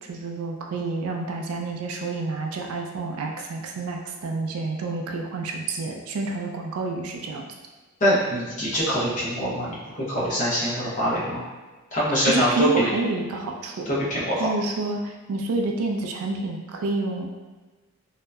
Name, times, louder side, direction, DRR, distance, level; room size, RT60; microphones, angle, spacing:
voice 1, 0.0-7.5 12.3-13.9 14.4-17.3, right 3 dB, 75° right, 2 dB, 0.3 m, -29 dB
voice 2, 8.0-11.4 11.9-12.9 13.9-14.5, equal, 35° left, -8 dB, 0.8 m, -24 dB
2.7 x 2.1 x 2.3 m, 1.3 s
head